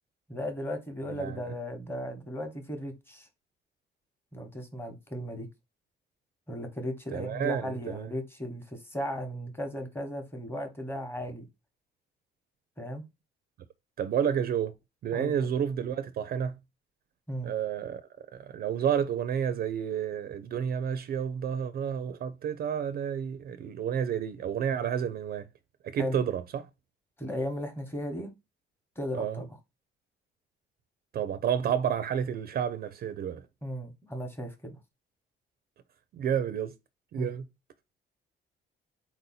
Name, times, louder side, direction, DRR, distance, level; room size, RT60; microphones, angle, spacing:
voice 1, 0.3-3.3 4.3-5.5 6.5-11.5 12.8-13.0 15.1-15.5 17.3-17.5 26.0-26.2 27.2-28.3 29.0-29.6 33.6-34.8 37.1-37.4, equal, 10° left, 1.0 m, -36 dB
voice 2, 1.1-1.4 7.1-8.1 14.0-14.7 15.0-16.6 17.4-18.0 18.3-25.5 25.8-26.7 29.1-29.4 31.1-33.4 36.1-36.7 37.1-37.4, right 8 dB, 50° right, 0.4 m, -30 dB
4.2 x 2.7 x 4.0 m
cardioid pair, 135°, 20 cm